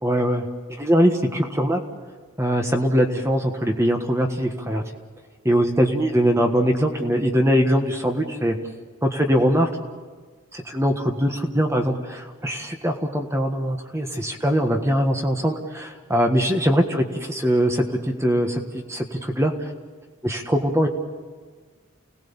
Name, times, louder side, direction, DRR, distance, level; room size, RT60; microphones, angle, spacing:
voice 1, 0.0-0.5 0.8-1.8 2.4-4.8 5.4-8.6 9.0-9.7 10.5-19.7 20.2-20.9, equal, 15° right, 3 dB, 1.5 m, -22 dB
29.5 x 18.5 x 7.1 m, 1.5 s
head